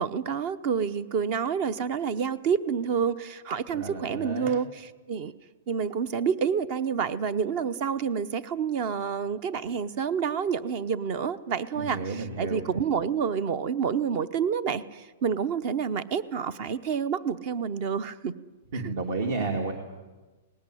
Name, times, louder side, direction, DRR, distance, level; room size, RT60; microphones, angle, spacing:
voice 1, 0.0-5.3 5.7-18.3 18.7-18.9, right 6 dB, 40° right, 17 dB, 0.8 m, -28 dB
voice 2, 3.7-4.5 11.7-12.7 18.7-19.7, right 3 dB, 60° right, 4 dB, 2.6 m, -31 dB
19.0 x 17.0 x 9.9 m, 1.2 s
hypercardioid pair, 160°, 0 cm